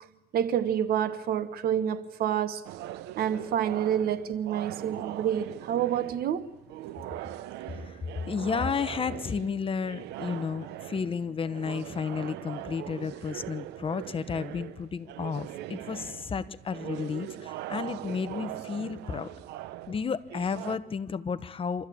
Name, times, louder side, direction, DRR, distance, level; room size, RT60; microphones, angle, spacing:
voice 1, 0.3-2.6 3.2-6.5, right 9 dB, 65° right, 1.3 m, -28 dB
sound 1, 2.6-20.8, right 13 dB, 85° right, 0.8 m, -41 dB
voice 2, 7.7-8.0 8.3-19.3 19.9-21.9, left 6 dB, 30° left, 1.0 m, -32 dB
26.0 x 14.0 x 8.6 m
cardioid pair, 110°, 17 cm